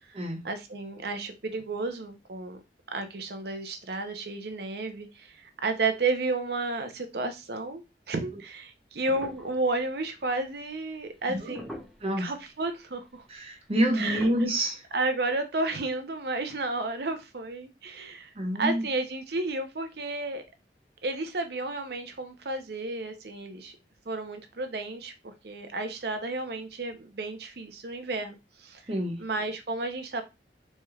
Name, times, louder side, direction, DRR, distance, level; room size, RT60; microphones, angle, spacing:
voice 1, 0.4-2.6 2.9-11.7 12.2-13.2 13.9-14.2 14.9-18.3 18.6-20.4 21.0-23.8 24.1-28.9 29.2-30.2, right 3 dB, 65° right, 0.7 m, -32 dB
sound 1, 9.1-10.4 11.1-11.2 11.5-12.2 12.9-13.0 14.1-14.4, left 1 dB, ahead, 0.5 m, -42 dB
voice 2, 13.3-14.8 18.4-18.8 28.9-29.2, right 1 dB, 35° right, 0.9 m, -27 dB
4.3 x 3.2 x 2.3 m
head